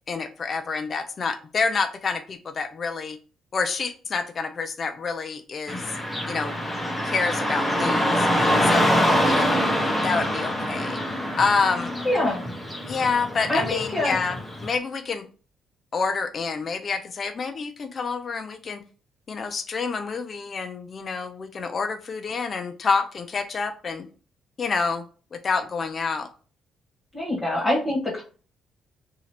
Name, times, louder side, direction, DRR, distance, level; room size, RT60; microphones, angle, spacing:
voice 1, 0.1-3.2 3.5-5.8 6.3-6.6 7.0-8.3 8.6-8.9 9.3-9.6 10.0-11.0 11.4-11.9 12.8-15.3 15.9-18.8 19.3-24.1 24.6-25.0 25.3-26.3, left 4 dB, 45° left, 6 dB, 0.5 m, -27 dB
Car passing by / Traffic noise roadway noise, 5.7-14.7, equal, 10° left, 1.0 m, -25 dB
voice 2, 12.0-12.4 13.5-14.2 27.1-28.2, left 1 dB, 25° left, -6 dB, 1.5 m, -24 dB
2.9 x 2.8 x 4.2 m, 0.38 s
cardioid pair, 90°, 0 cm